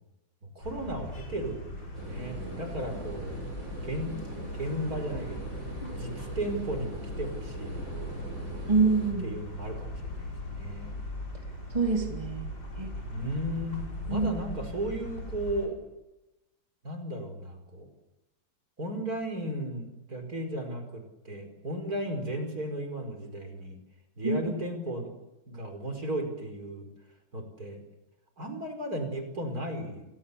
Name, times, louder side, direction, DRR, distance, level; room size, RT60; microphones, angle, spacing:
sound 1, 0.6-15.7, left 1 dB, 70° left, 6.7 m, -39 dB
voice 1, 0.6-3.4 3.8-4.2 4.5-5.5 5.9-7.9 9.2-10.9 13.1-15.7 16.8-17.9 18.8-23.8 24.2-25.1 25.5-26.9 27.3-27.8 28.4-30.1, right 1 dB, 50° right, 6 dB, 5.4 m, -35 dB
sound 2, 1.9-9.1, right 2 dB, 80° right, 6.0 m, -42 dB
voice 2, 8.7-9.3 11.7-12.9 14.1-14.3 24.2-24.4, right 4 dB, 15° right, 2 dB, 3.5 m, -26 dB
29.5 x 27.5 x 7.1 m, 0.99 s
omnidirectional pair, 2.1 m